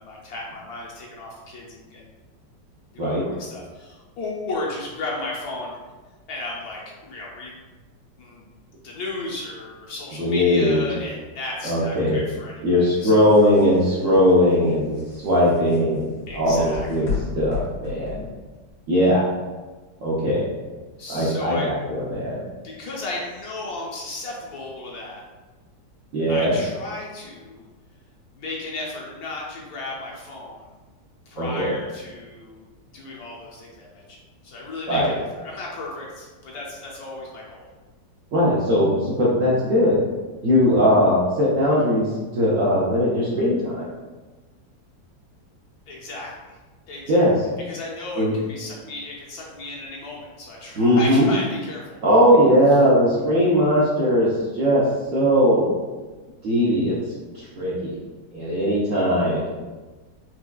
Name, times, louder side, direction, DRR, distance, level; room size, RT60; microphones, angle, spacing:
voice 1, 0.0-2.1 2.9-5.8 6.3-7.6 8.2-8.4 8.8-13.3 16.3-17.1 21.0-21.7 22.6-25.2 26.3-27.6 28.4-30.7 31.3-32.7 32.9-37.7 45.9-46.6 46.9-47.3 47.7-52.0, left 2 dB, 70° left, -3 dB, 1.0 m, -34 dB
voice 2, 10.2-10.9 11.6-12.2 12.6-15.0 15.2-17.1 17.3-18.3 18.9-19.2 20.0-20.5 21.1-22.4 26.1-26.5 31.4-31.7 34.9-35.1 38.3-40.0 40.4-42.1 42.3-43.9 47.1-47.3 48.2-48.3 50.8-51.3 52.0-54.8 55.1-55.8 56.4-57.0 57.3-58.0 58.3-59.6, equal, 65° right, -6 dB, 0.8 m, -19 dB
sound 1, 12.8-18.7, left 4 dB, 90° left, 1.6 m, -34 dB
4.5 x 2.2 x 2.3 m, 1.3 s
omnidirectional pair, 1.9 m